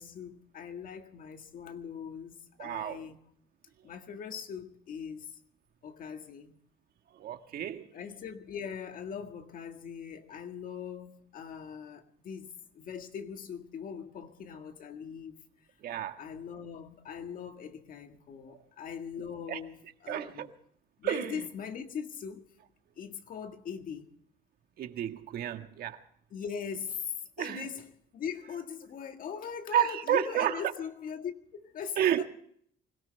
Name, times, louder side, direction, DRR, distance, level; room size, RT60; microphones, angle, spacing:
voice 1, 0.0-3.2 3.8-5.4 5.8-6.6 7.9-15.4 16.2-20.5 21.0-22.5 23.0-24.1 26.3-32.2, left 7 dB, 55° left, 1.9 m, -41 dB
voice 2, 2.6-3.0 7.1-7.9 15.8-16.2 18.5-18.6 19.5-19.6 20.1-20.5 21.0-21.5 24.8-26.0 27.4-27.7 29.7-30.6 32.0-32.2, right 11 dB, 65° right, 1.6 m, -31 dB
25.0 x 17.5 x 3.4 m
cardioid pair, 110°, 17 cm